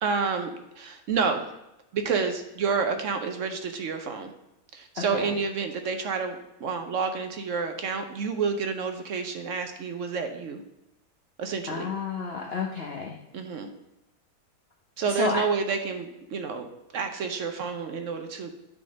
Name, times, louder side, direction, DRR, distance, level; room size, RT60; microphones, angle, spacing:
voice 1, 0.0-1.4 1.9-4.3 4.7-10.6 11.4-11.9 13.3-13.7 15.0-16.7 16.9-18.5, right 5 dB, 60° right, 7 dB, 0.9 m, -29 dB
voice 2, 5.0-5.3 11.7-13.1 15.1-15.4, left 4 dB, 50° left, -1 dB, 0.8 m, -30 dB
9.3 x 3.7 x 5.1 m, 0.89 s
omnidirectional pair, 1.7 m